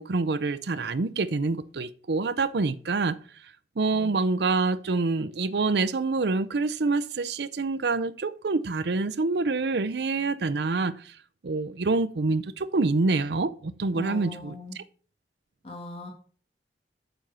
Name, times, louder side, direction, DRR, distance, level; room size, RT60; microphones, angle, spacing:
voice 1, 0.0-3.2 3.8-11.2 11.4-14.8, right 3 dB, 70° right, 0.6 m, -26 dB
voice 2, 13.9-14.8 15.6-16.1, left 2 dB, 35° left, 1.9 m, -39 dB
7.6 x 7.0 x 5.5 m
head